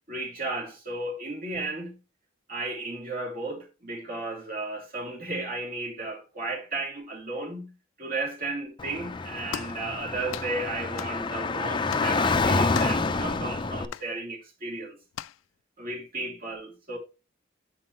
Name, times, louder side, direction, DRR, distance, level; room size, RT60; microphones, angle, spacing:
voice 1, 0.1-2.0 2.5-7.7 8.0-15.0 15.8-17.0, right 2 dB, 50° right, 3.0 m, -34 dB
Car / Traffic noise roadway noise, 8.8-13.9, left 3 dB, 25° left, 0.6 m, -27 dB
sound 1, 9.5-9.8 10.3-10.5 11.0-11.2 11.9-12.1 12.7-13.1 13.9-14.1 15.1-15.4, left 9 dB, 90° left, 0.4 m, -37 dB
8.2 x 5.7 x 3.1 m
head